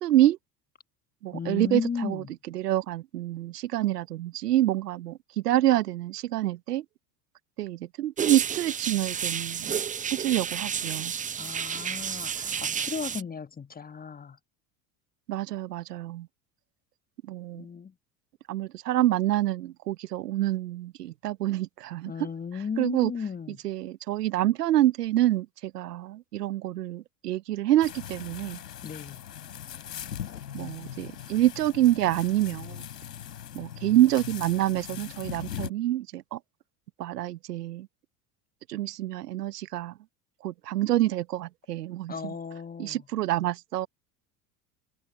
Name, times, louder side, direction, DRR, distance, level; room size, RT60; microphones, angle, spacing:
voice 1, 0.0-0.4 1.2-2.2 2.5-6.8 7.6-9.7 10.1-11.1 15.3-16.3 17.3-17.6 18.5-22.3 22.8-23.1 23.6-28.6 30.5-32.8 33.5-36.4 37.0-37.9 38.7-39.9 40.4-42.3 42.8-43.9, right 14 dB, 75° right, 1.1 m, -27 dB
voice 2, 1.3-2.3 11.4-14.4 17.5-17.9 22.0-23.6 28.8-29.2 42.1-43.0, left 6 dB, 20° left, 1.5 m, -35 dB
sound 1, 8.2-13.2, right 7 dB, 15° right, 0.6 m, -31 dB
sound 2, 27.8-35.7, left 10 dB, 80° left, 3.5 m, -40 dB
hypercardioid pair, 70°, 47 cm